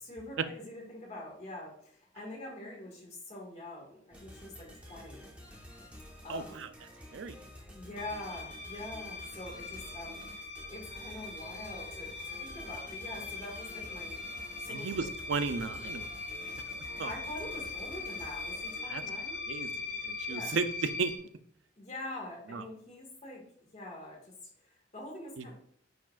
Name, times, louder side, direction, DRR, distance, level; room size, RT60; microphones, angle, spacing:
voice 1, 0.0-5.3 6.2-6.6 7.7-15.0 17.0-19.5 20.2-20.5 21.8-23.4 23.7-24.2 24.6-25.5, left 1 dB, 40° left, -2 dB, 1.9 m, -45 dB
sound 1, 4.1-19.2, equal, 5° right, 1.1 m, -50 dB
voice 2, 6.3-6.7 7.1-7.3 14.7-16.0 17.0-17.1 18.9-19.0 19.5-21.1 22.5-22.6 25.4-25.5, right 4 dB, 85° right, 11 dB, 0.5 m, -34 dB
sound 2, 8.0-21.2, left 4 dB, 75° left, 1.6 m, -41 dB
9.5 x 4.8 x 2.5 m, 0.63 s
head